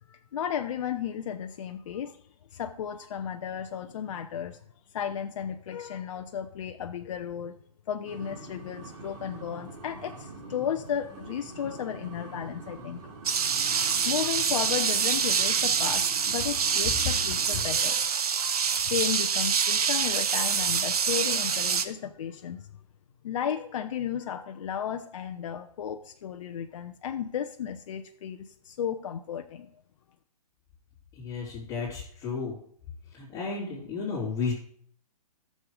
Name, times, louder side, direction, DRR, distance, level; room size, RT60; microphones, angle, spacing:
voice 1, 0.1-2.2 2.5-4.6 4.9-7.6 7.9-13.0 13.8-22.7 23.2-29.7, left 8 dB, 55° left, 6 dB, 0.7 m, -34 dB
sound 1, 8.0-18.1, right 2 dB, 50° right, 3.2 m, -45 dB
sound 2, 13.3-21.9, right 6 dB, 65° right, 1.0 m, -26 dB
voice 2, 31.1-32.5 33.1-34.5, left 4 dB, 15° left, -9 dB, 3.1 m, -33 dB
13.5 x 6.6 x 4.9 m, 0.63 s
hypercardioid pair, 140°, 20 cm